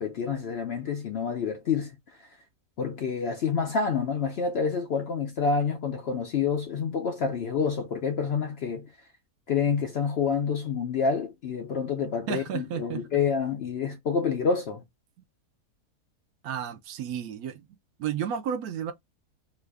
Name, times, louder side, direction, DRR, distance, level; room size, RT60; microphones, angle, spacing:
voice 1, 0.0-2.3 2.8-8.9 9.5-14.8, left 5 dB, 75° left, 0.5 m, -28 dB
voice 2, 12.3-13.0 16.4-17.7 18.0-18.9, right 8 dB, 75° right, 1.0 m, -32 dB
3.1 x 2.4 x 3.3 m
omnidirectional pair, 1.7 m